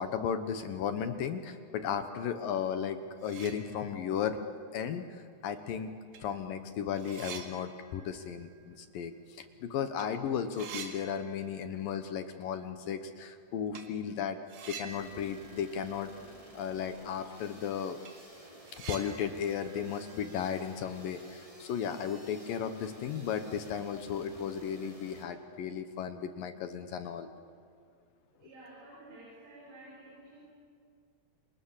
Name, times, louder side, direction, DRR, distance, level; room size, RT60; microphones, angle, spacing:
voice 1, 0.0-4.4 4.7-5.9 6.2-14.4 14.7-16.1 16.5-18.0 18.7-27.3, left 8 dB, 70° left, 9 dB, 2.4 m, -35 dB
sound 1, 2.8-2.9 3.2-4.2 4.6-4.7 5.6-5.7 6.1-9.6 9.8-10.1 10.3-11.9 12.2-12.3 13.7-14.0 14.5-16.6 16.9-17.0 17.4-17.5 17.8-21.1, right 6 dB, 60° right, 3.7 m, -48 dB
sound 2, 14.9-25.2, right 1 dB, 10° right, 3.0 m, -53 dB
voice 2, 28.3-30.5, right 2 dB, 85° right, -5 dB, 8.0 m, -52 dB
29.5 x 27.0 x 7.4 m, 2.3 s
omnidirectional pair, 4.8 m